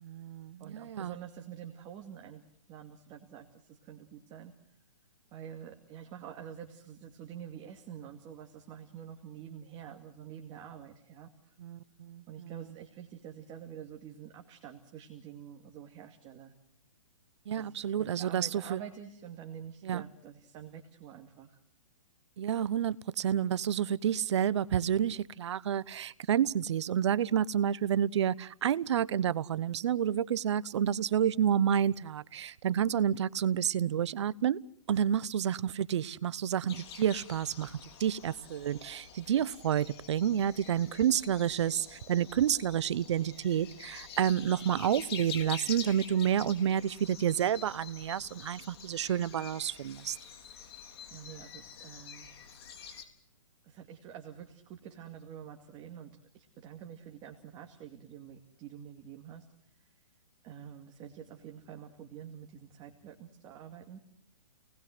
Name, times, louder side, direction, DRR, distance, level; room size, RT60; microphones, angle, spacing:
voice 1, 0.0-1.2 11.6-12.5 17.5-18.8 19.8-20.0 22.4-34.6 34.9-50.2, right 9 dB, 60° right, 20 dB, 1.0 m, -29 dB
voice 2, 0.6-2.4 2.7-4.5 5.3-11.6 12.3-16.5 17.6-21.6 51.1-52.4 53.6-59.5 59.7-59.9 60.4-64.0, right 9 dB, 25° right, 4 dB, 2.3 m, -47 dB
sound 1, 36.7-53.0, left 7 dB, 50° left, 3.9 m, -47 dB
29.5 x 19.5 x 7.8 m, 0.68 s
hypercardioid pair, 140°, 16 cm